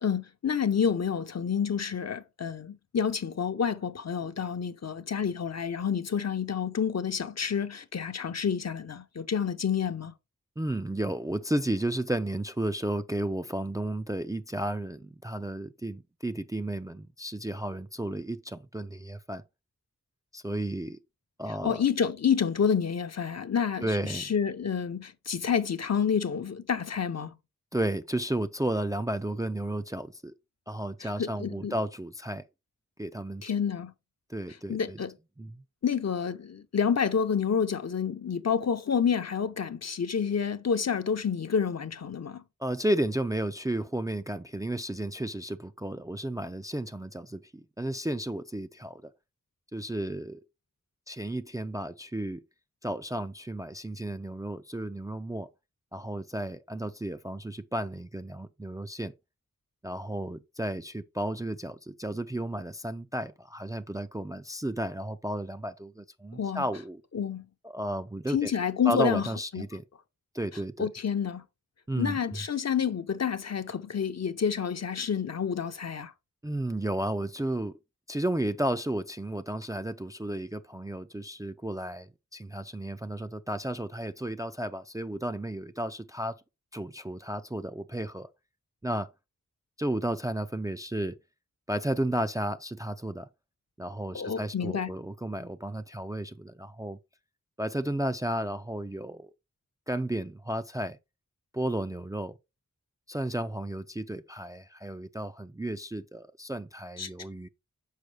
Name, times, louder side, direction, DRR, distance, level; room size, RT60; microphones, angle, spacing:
voice 1, 0.0-10.1 21.6-27.4 31.0-31.7 33.4-33.9 34.7-35.1 35.8-42.4 66.3-66.6 67.1-67.4 68.3-69.3 69.5-69.6 70.8-71.4 72.0-76.1 94.1-94.9 107.0-107.1, left 7 dB, 55° left, 0.7 m, -29 dB
voice 2, 10.6-19.4 20.3-21.0 21.4-21.8 23.8-24.3 27.7-30.3 30.7-32.4 33.0-33.5 34.3-35.0 35.4-35.6 42.6-49.1 49.7-50.4 51.1-52.4 52.8-55.5 55.9-59.1 59.8-67.0 67.6-68.5 68.9-69.8 70.3-70.9 71.9-72.2 76.4-77.7 78.1-86.4 86.7-88.3 88.8-89.1 89.8-91.2 91.7-93.3 93.8-97.0 97.6-99.3 99.9-101.0 101.5-102.4 103.1-107.5, right 1 dB, 10° right, 0.4 m, -33 dB
6.5 x 4.6 x 3.3 m
wide cardioid pair, 50°, 32 cm